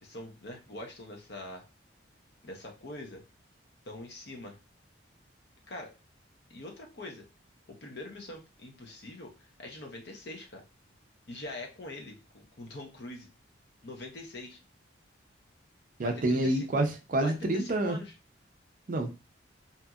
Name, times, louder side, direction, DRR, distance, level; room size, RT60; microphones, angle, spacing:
voice 1, 0.0-1.7 2.4-3.2 3.8-4.6 5.7-6.0 6.5-7.3 7.7-10.6 11.3-13.3 13.8-14.6 16.0-16.7 17.2-18.1, left 2 dB, 55° left, 2 dB, 0.7 m, -43 dB
voice 2, 16.0-18.0 18.9-19.1, right 1 dB, 45° right, 5 dB, 0.4 m, -28 dB
2.8 x 2.6 x 2.3 m, 0.28 s
head